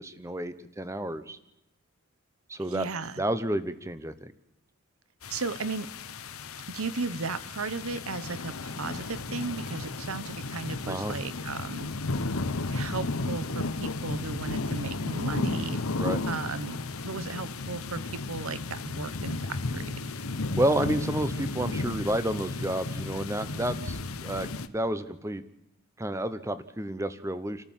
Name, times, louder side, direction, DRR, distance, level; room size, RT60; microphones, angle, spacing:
voice 1, 0.0-1.4 2.5-2.9 3.2-4.3 10.9-11.1 16.0-16.2 20.6-24.5 24.7-25.4 26.0-27.6, right 1 dB, 15° right, 13 dB, 1.0 m, -30 dB
voice 2, 2.7-3.2 5.3-5.9 6.7-11.9 12.7-15.8 16.3-16.8 17.0-20.1, right 4 dB, 80° right, 15 dB, 1.1 m, -35 dB
sound 1, 5.2-24.7, left 3 dB, 80° left, 1.1 m, -34 dB
29.5 x 14.0 x 7.4 m, 0.88 s
head